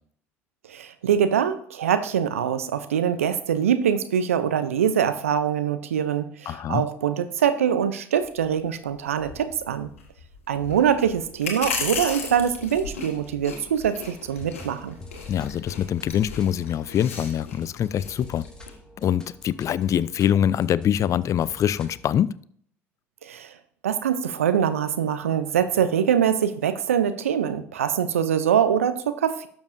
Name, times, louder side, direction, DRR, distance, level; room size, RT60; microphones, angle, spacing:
voice 1, 0.7-9.9 10.5-15.0 23.2-23.5 23.8-29.5, right 8 dB, 90° right, 12 dB, 0.6 m, -23 dB
voice 2, 6.5-6.8 15.3-18.4 19.0-22.4, left 10 dB, 45° left, 19 dB, 0.4 m, -24 dB
sound 1, 8.2-18.8, left 5 dB, 90° left, 1.6 m, -36 dB
sound 2, 14.3-22.0, left 1 dB, 10° left, 2.2 m, -46 dB
12.0 x 7.2 x 2.6 m, 0.62 s
hypercardioid pair, 60°, 7 cm